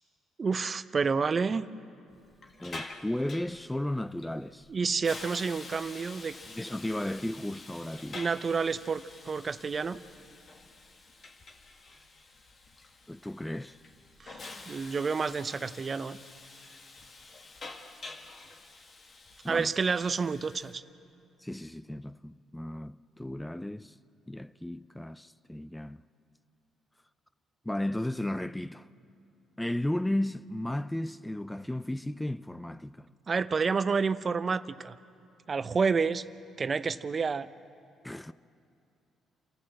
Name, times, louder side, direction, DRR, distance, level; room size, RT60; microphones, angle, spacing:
voice 1, 0.4-1.7 4.7-6.4 8.1-10.0 14.2-16.2 19.5-20.8 33.3-35.0 35.5-36.2 36.6-37.5, right 5 dB, 40° right, 0.6 m, -29 dB
Hiss, 2.1-20.7, left 3 dB, 45° left, 2.1 m, -48 dB
voice 2, 2.6-4.7 6.5-8.2 13.1-13.8 19.4-19.7 21.4-23.9 24.3-26.0 27.7-28.9 29.6-33.1 38.0-38.3, left 1 dB, 10° left, 0.4 m, -34 dB
28.0 x 14.0 x 7.7 m
supercardioid pair, 70°, 0 cm